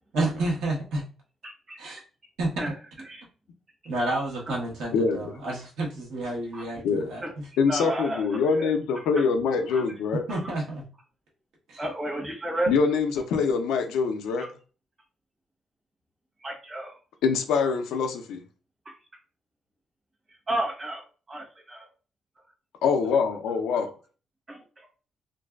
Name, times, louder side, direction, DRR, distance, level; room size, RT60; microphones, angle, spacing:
voice 1, 0.1-1.0 1.8-2.0 2.4-2.7 3.8-7.5 9.6-9.7 10.3-10.8 11.7-11.8, right 2 dB, 80° right, -3 dB, 1.0 m, -30 dB
voice 2, 1.4-1.8 2.6-2.7 3.1-3.2 4.5-4.6 6.5-6.6 7.2-7.3 7.7-8.7 9.2-9.3 9.7-9.8 11.8-12.7 14.4-14.5 16.4-17.0 20.5-21.9 24.5-24.9, right 1 dB, 35° right, -2 dB, 1.0 m, -32 dB
voice 3, 4.9-5.3 6.8-7.1 7.6-10.2 12.7-14.5 17.2-18.4 22.8-23.9, left 5 dB, 90° left, 5 dB, 0.4 m, -24 dB
2.5 x 2.3 x 2.2 m, 0.36 s
cardioid pair, 90°, 0 cm